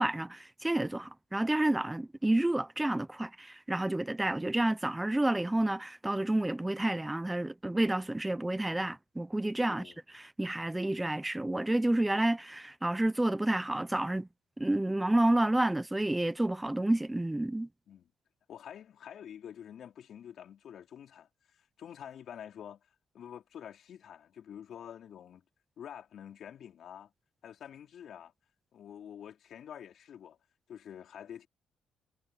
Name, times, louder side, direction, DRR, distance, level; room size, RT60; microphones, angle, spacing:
voice 1, 0.0-9.9 10.4-14.3 14.6-17.7, right 1 dB, 10° right, 0.9 m, -29 dB
voice 2, 9.7-10.0 17.9-18.1 18.5-22.8 23.1-25.4 25.8-27.1 27.4-28.3 28.7-30.4 30.7-31.5, left 9 dB, 65° left, 4.5 m, -47 dB
cardioid pair, 90°, 0 cm